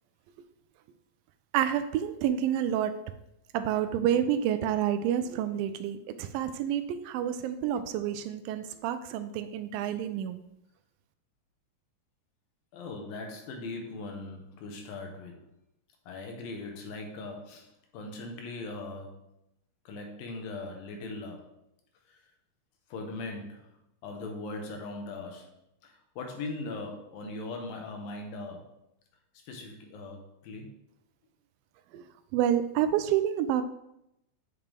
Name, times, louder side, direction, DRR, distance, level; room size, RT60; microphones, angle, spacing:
voice 1, 1.5-3.0 3.5-10.4 31.9-32.0 32.3-33.6, right 10 dB, 85° right, 10 dB, 2.2 m, -28 dB
voice 2, 12.7-15.4 16.1-19.3 19.9-21.5 22.1-22.2 22.9-23.7 24.0-25.5 25.8-28.7 29.5-30.7, left 2 dB, 80° left, 3 dB, 2.9 m, -40 dB
8.6 x 5.8 x 3.4 m, 0.82 s
omnidirectional pair, 4.1 m